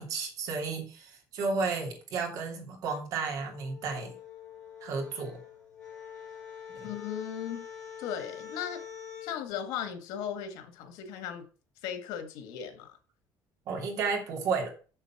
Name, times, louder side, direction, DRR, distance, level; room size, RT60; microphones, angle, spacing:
voice 1, 0.0-4.1 4.8-5.4 6.8-6.9 13.7-14.7, right 4 dB, 55° right, 2.7 m, -32 dB
sound 1, 3.2-9.4, left 7 dB, 5° left, 6.1 m, -45 dB
voice 2, 6.8-7.7 8.0-8.8 9.2-11.4 11.8-13.0, left 9 dB, 90° left, 1.7 m, -37 dB
7.2 x 6.7 x 5.9 m
cardioid pair, 170°, 7 cm